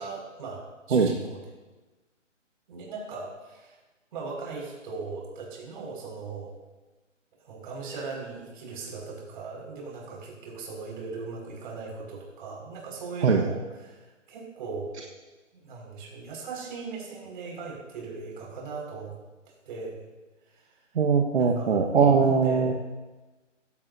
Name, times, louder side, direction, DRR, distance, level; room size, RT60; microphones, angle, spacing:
voice 1, 0.0-1.4 2.7-3.8 4.1-6.5 7.4-15.0 15.5-19.1 19.7-20.0 20.5-20.7 21.4-21.8 22.2-22.7, right 4 dB, 40° right, -1 dB, 5.5 m, -38 dB
voice 2, 20.9-22.7, right 5 dB, 60° right, 2 dB, 1.5 m, -21 dB
16.5 x 15.5 x 2.7 m, 1.2 s
figure-of-eight pair, 140°, 38 cm